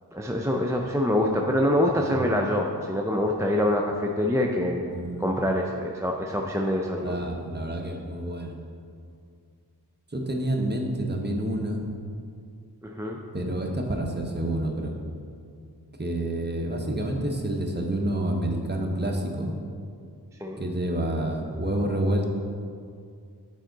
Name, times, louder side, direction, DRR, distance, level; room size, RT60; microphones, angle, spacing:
voice 1, 0.1-4.9 5.2-7.2 12.8-13.2 20.4-20.6, left 1 dB, 10° right, 0 dB, 0.4 m, -25 dB
voice 2, 4.9-5.5 7.0-8.5 10.1-11.9 13.3-14.9 16.0-19.5 20.6-22.3, right 1 dB, 25° right, 2 dB, 0.8 m, -28 dB
7.5 x 4.5 x 3.9 m, 2.3 s
wide cardioid pair, 40°, 39 cm